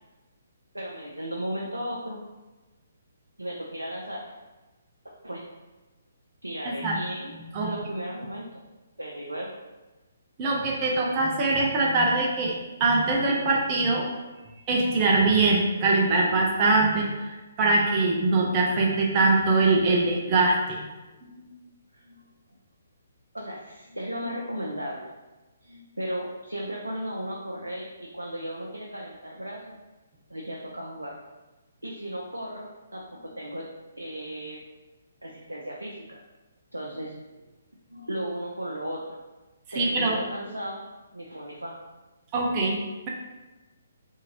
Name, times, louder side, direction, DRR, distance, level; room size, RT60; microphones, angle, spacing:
voice 1, 0.7-2.2 3.4-4.4 5.2-5.4 6.4-7.3 7.6-8.6 9.0-9.6 21.7-22.3 23.3-25.1 25.6-29.8 30.3-31.2 31.8-33.6 34.0-34.6 35.2-36.2 36.7-37.5 37.9-39.2 39.7-40.8 41.1-41.8, equal, 90° right, -2 dB, 0.4 m, -35 dB
voice 2, 6.6-7.0 7.5-7.7 10.4-14.1 14.7-20.8 21.2-21.3 39.8-40.2 42.3-43.1, right 3 dB, 30° right, -2 dB, 0.5 m, -23 dB
2.7 x 2.6 x 2.9 m, 1.1 s
figure-of-eight pair, 135°, 0 cm